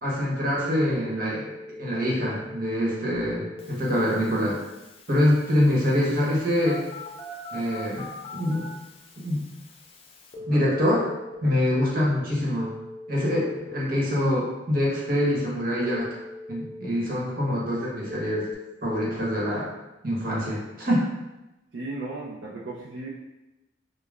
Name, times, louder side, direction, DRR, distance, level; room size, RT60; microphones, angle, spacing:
voice 1, 0.0-1.5 1.8-4.6 5.1-6.8 7.5-8.7 9.2-9.4 10.5-11.0 11.4-12.7 13.1-16.1 16.5-18.5 18.8-19.7 20.0-21.0, left 1 dB, 50° right, -4 dB, 1.0 m, -25 dB
Telephone, 0.5-11.3 12.6-13.6 15.8-16.9 18.1-18.5, left 1 dB, 30° left, 0.4 m, -42 dB
voice 2, 21.7-23.1, right 2 dB, 75° right, -5 dB, 0.4 m, -36 dB
5.1 x 2.1 x 2.4 m, 1.0 s
head